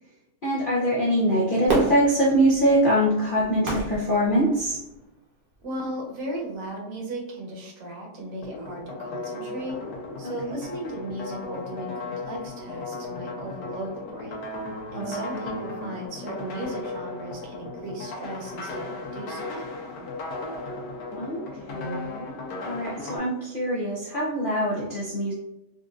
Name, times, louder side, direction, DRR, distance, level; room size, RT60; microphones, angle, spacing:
voice 1, 0.4-4.8 14.9-15.4 21.2-22.4 22.6-25.3, equal, 60° left, -6 dB, 0.5 m, -24 dB
Fireworks, 1.7-5.0 5.6-5.7, right 2 dB, 35° right, 0.8 m, -30 dB
voice 2, 5.6-9.8 10.2-14.4 14.9-19.7, right 1 dB, 60° right, 0 dB, 1.3 m, -36 dB
sound 1, 8.4-23.2, left 2 dB, 90° left, 1.5 m, -36 dB
4.3 x 2.5 x 2.4 m, 0.92 s
omnidirectional pair, 1.8 m